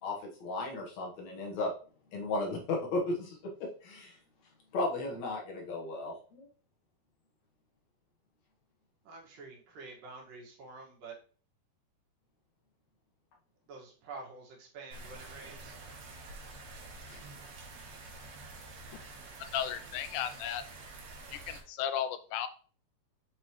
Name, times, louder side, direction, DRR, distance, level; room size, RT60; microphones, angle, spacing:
voice 1, 0.0-1.7 2.1-3.4 3.8-4.2 4.7-6.5 17.1-17.2, left 2 dB, 60° left, -1 dB, 2.4 m, -35 dB
voice 2, 9.0-11.1 13.7-15.8, right 3 dB, 85° right, -1 dB, 3.4 m, -48 dB
sound 1, 14.9-21.6, right 3 dB, 65° right, 2.3 m, -48 dB
voice 3, 19.4-20.6 21.3-22.5, left 9 dB, 80° left, 10 dB, 2.0 m, -35 dB
7.3 x 4.8 x 3.1 m, 0.41 s
omnidirectional pair, 3.8 m